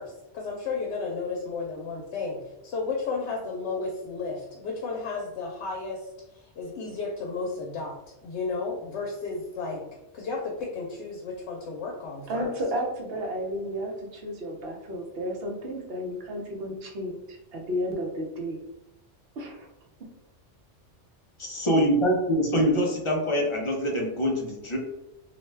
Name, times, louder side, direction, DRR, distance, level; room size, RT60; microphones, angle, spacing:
voice 1, 0.0-8.0 8.2-9.9 10.1-12.6, left 4 dB, 75° left, -1 dB, 0.8 m, -33 dB
voice 2, 12.3-18.6 19.4-19.7, equal, 65° right, 1 dB, 0.8 m, -32 dB
voice 3, 21.4-24.8, equal, 50° left, -1 dB, 0.3 m, -24 dB
2.5 x 2.2 x 3.1 m, 0.94 s
omnidirectional pair, 1.2 m